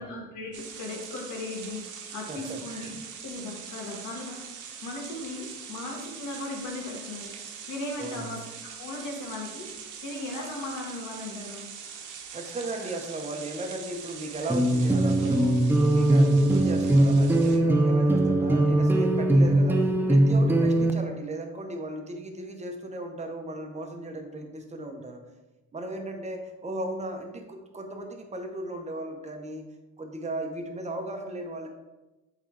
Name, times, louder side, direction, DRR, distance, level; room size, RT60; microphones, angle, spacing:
voice 1, 0.0-2.9 3.2-4.4 4.8-7.3 7.7-8.4 8.8-9.7 10.0-11.7, left 2 dB, 75° left, 0 dB, 1.6 m, -37 dB
sound 1, 0.5-17.6, right 6 dB, 75° right, 1.0 m, -42 dB
voice 2, 2.3-2.9 8.0-8.4 12.3-25.2 25.7-29.6 30.0-31.7, right 2 dB, 20° right, 4 dB, 0.9 m, -36 dB
sound 2, 14.5-20.9, right 1 dB, 5° right, 0.5 m, -21 dB
8.2 x 3.8 x 3.3 m, 1.1 s
cardioid pair, 115°, 31 cm